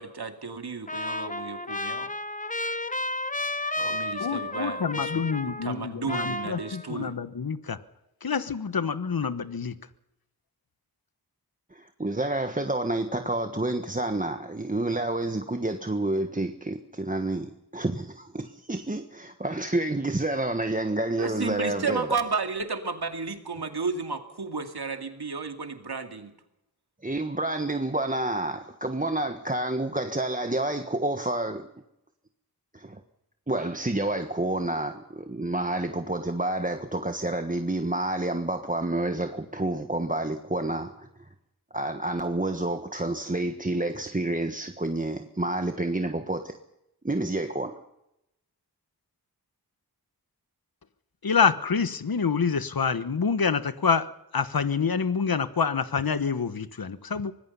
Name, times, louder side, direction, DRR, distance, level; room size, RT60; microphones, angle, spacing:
voice 1, 0.0-2.1 3.8-7.1 21.2-26.3, right 4 dB, 75° right, 6 dB, 2.4 m, -33 dB
Trumpet, 0.9-5.8 6.1-7.1, left 2 dB, 20° left, 0.9 m, -32 dB
voice 2, 4.2-7.8 8.2-9.8 51.2-57.3, left 5 dB, 65° left, 13 dB, 1.3 m, -27 dB
voice 3, 11.7-22.1 27.0-31.7 32.7-33.0 33.5-41.1 41.7-46.6 47.0-47.8, right 2 dB, 20° right, 6 dB, 1.3 m, -29 dB
25.0 x 19.5 x 5.6 m, 0.86 s
wide cardioid pair, 70°, 39 cm